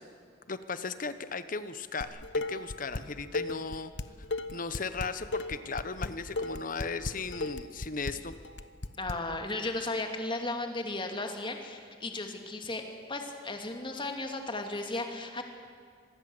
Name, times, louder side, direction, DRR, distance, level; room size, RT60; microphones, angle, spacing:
voice 1, 0.5-3.9 4.5-8.3, left 4 dB, 50° left, 12 dB, 1.1 m, -36 dB
Dishes pots and pans, 2.0-3.0 3.3-9.1, left 2 dB, 75° left, 1.0 m, -35 dB
voice 2, 3.2-3.5 9.0-12.8 13.1-15.4, left 2 dB, 25° left, 4 dB, 2.6 m, -35 dB
25.5 x 20.0 x 8.0 m, 2.2 s
head